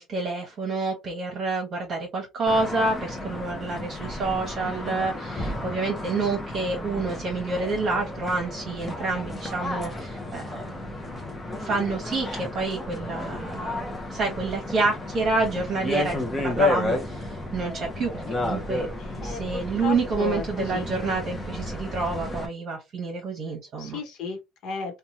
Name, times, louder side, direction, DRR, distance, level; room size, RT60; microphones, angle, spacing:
voice 1, 0.0-10.7 11.6-18.9 19.2-24.0, right 3 dB, 40° right, 1.0 m, -28 dB
sound 1, 2.5-22.5, left 2 dB, 15° left, 0.7 m, -32 dB
voice 2, 4.6-5.1 19.0-20.8 23.8-25.0, left 5 dB, 65° left, 1.0 m, -35 dB
3.0 x 2.2 x 2.6 m
cardioid pair, 135°, 0 cm